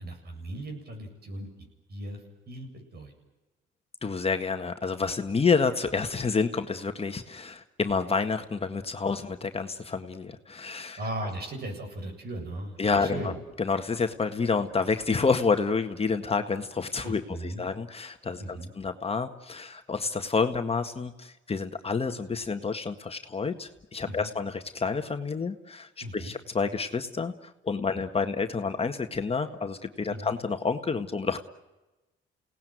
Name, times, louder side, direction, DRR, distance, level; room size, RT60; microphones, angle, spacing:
voice 1, 0.0-1.5 1.9-2.2 2.5-3.1 11.0-13.4 17.0-17.7 18.4-18.7 24.0-24.3 26.0-26.4 30.1-30.3, right 1 dB, 55° right, 3 dB, 8.0 m, -37 dB
voice 2, 4.0-11.0 12.8-13.3 13.6-27.3 27.6-31.4, left 4 dB, 30° left, 7 dB, 1.7 m, -29 dB
28.5 x 18.5 x 9.4 m, 1.1 s
cardioid pair, 90°, 20 cm